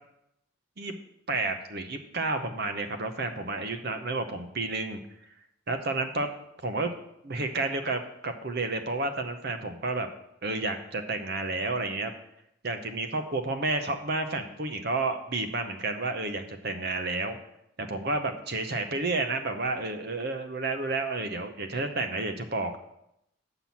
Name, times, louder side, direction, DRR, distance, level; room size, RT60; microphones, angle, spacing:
voice 1, 1.3-5.0 5.7-6.3 6.6-6.9 7.2-10.1 10.4-12.1 12.6-17.4 17.8-22.8, right 3 dB, 50° right, 7 dB, 0.8 m, -31 dB
5.9 x 5.8 x 7.1 m, 0.79 s
head